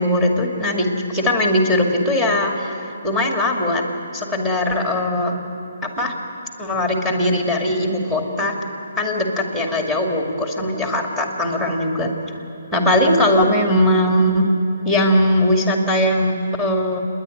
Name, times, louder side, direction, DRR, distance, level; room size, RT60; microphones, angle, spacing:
voice 1, 0.0-3.8 4.1-5.4 5.8-6.1 6.6-8.5 9.0-12.1 12.7-14.5 14.8-17.0, left 1 dB, 5° right, 1 dB, 2.3 m, -20 dB
28.5 x 10.5 x 9.8 m, 2.8 s
hypercardioid pair, 155°, 0 cm